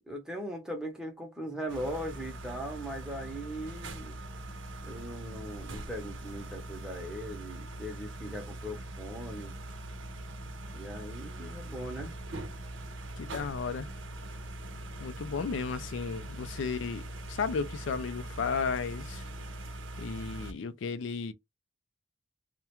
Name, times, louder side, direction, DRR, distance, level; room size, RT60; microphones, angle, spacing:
voice 1, 0.1-4.2 4.8-9.5 10.7-12.1, equal, 5° right, 0.7 m, -39 dB
sound 1, 1.7-20.5, right 1 dB, 85° right, 0.6 m, -42 dB
voice 2, 13.2-13.9 15.0-17.0 17.3-19.2 20.0-21.3, left 5 dB, 80° left, 0.4 m, -34 dB
2.3 x 2.1 x 2.9 m
head